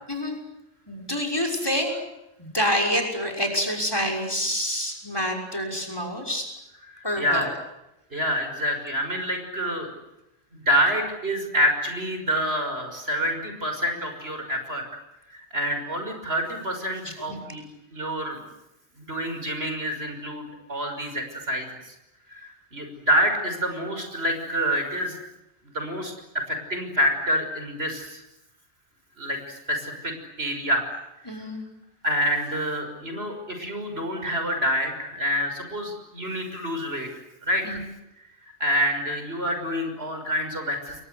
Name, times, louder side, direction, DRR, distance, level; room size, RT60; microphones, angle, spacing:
voice 1, 0.9-1.9 2.4-6.5 7.0-7.5 17.0-17.4 31.2-31.6 37.6-37.8, equal, 20° left, 4 dB, 6.1 m, -27 dB
voice 2, 6.9-7.5 8.1-9.9 10.5-14.8 15.3-17.6 17.9-18.4 19.0-21.7 22.3-25.2 25.7-28.2 29.2-30.9 31.3-31.4 32.0-37.1 37.4-37.8 38.6-41.0, equal, 65° right, 5 dB, 6.5 m, -27 dB
29.5 x 23.0 x 8.2 m, 0.89 s
omnidirectional pair, 1.1 m